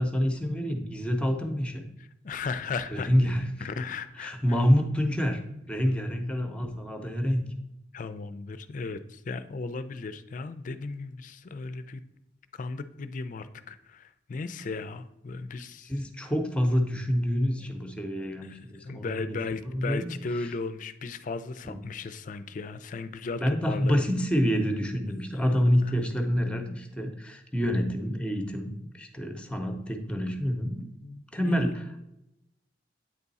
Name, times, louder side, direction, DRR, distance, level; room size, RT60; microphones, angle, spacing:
voice 1, 0.0-1.8 2.9-3.7 4.2-5.4 5.7-7.4 15.9-19.4 19.7-20.1 21.6-21.8 23.4-30.8 31.3-32.0, equal, 5° left, 5 dB, 0.7 m, -27 dB
voice 2, 2.0-3.1 3.6-4.6 5.9-6.0 7.9-12.0 12.5-15.9 18.4-24.1 25.3-25.4 25.8-25.9 31.0-31.8, left 4 dB, 45° left, 12 dB, 0.4 m, -36 dB
8.9 x 3.6 x 4.1 m, 0.87 s
head